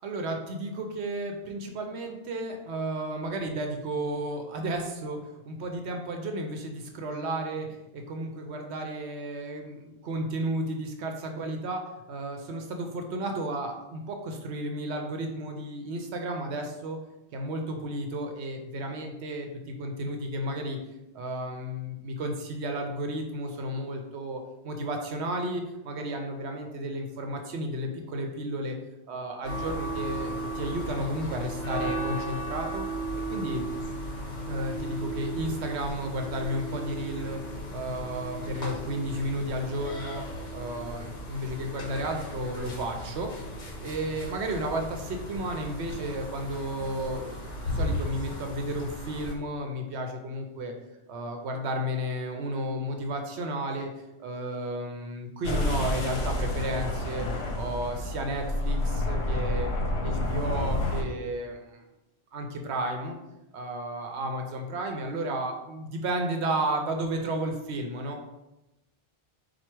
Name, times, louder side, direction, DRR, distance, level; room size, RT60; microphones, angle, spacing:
voice 1, 0.0-17.0 17.3-20.8 21.1-28.8 29.1-32.8 33.3-33.6 34.5-37.4 37.7-40.2 40.5-43.3 43.8-50.7 51.1-53.9 54.2-57.3 57.5-59.7 60.0-61.8 62.3-63.1 63.5-68.2, right 1 dB, 75° right, 4 dB, 0.9 m, -33 dB
sound 1, 29.4-49.3, right 1 dB, 45° left, 1.0 m, -35 dB
sound 2, 55.4-61.0, left 1 dB, 70° left, 1.0 m, -29 dB
4.5 x 2.3 x 4.4 m, 0.96 s
omnidirectional pair, 1.1 m